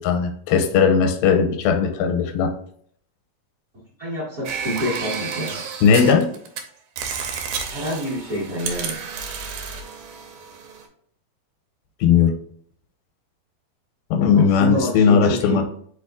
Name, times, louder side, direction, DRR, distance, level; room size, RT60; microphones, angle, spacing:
voice 1, 0.0-2.5 5.8-6.3 12.0-12.4 14.1-15.6, left 6 dB, 85° left, 6 dB, 2.4 m, -17 dB
voice 2, 4.0-5.6 7.7-9.0 14.3-15.6, equal, 40° right, -8 dB, 1.2 m, -27 dB
sound 1, 4.5-6.6 7.0-10.9, right 6 dB, 80° right, 2.3 m, -31 dB
5.1 x 4.2 x 2.4 m, 0.62 s
omnidirectional pair, 4.1 m